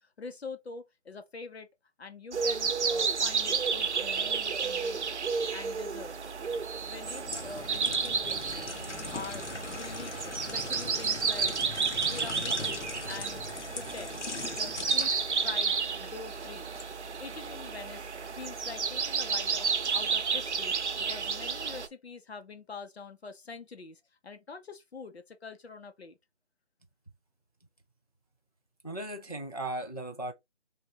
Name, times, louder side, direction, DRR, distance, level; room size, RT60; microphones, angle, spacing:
voice 1, 0.0-1.7 2.0-5.1 5.5-6.3 6.9-8.8 9.1-11.5 12.1-13.4 13.7-15.1 15.4-16.8 17.2-18.1 18.4-20.7 21.1-26.2, left 4 dB, 60° left, 0.9 m, -45 dB
sound 1, 2.3-21.9, right 5 dB, 75° right, 0.8 m, -31 dB
sound 2, 6.9-16.9 17.3-17.5, left 4 dB, 90° left, 1.2 m, -41 dB
voice 2, 28.8-30.3, right 1 dB, 35° left, 0.4 m, -37 dB
3.5 x 2.6 x 3.9 m
figure-of-eight pair, 175°, 35 cm